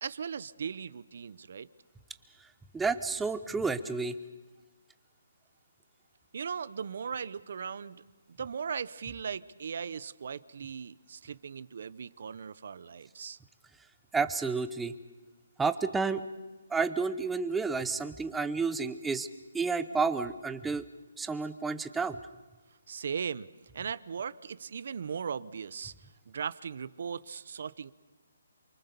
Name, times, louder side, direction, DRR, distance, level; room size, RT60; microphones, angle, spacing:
voice 1, 0.0-1.7 6.3-13.4 22.9-23.5 23.7-27.9, right 6 dB, 55° right, 19 dB, 0.8 m, -38 dB
voice 2, 2.7-4.1 14.1-14.9 15.6-16.2 16.7-19.3 19.5-20.8 21.2-22.2, right 4 dB, 5° right, 11 dB, 0.8 m, -30 dB
28.0 x 24.0 x 7.0 m, 1.2 s
hypercardioid pair, 160°, 0 cm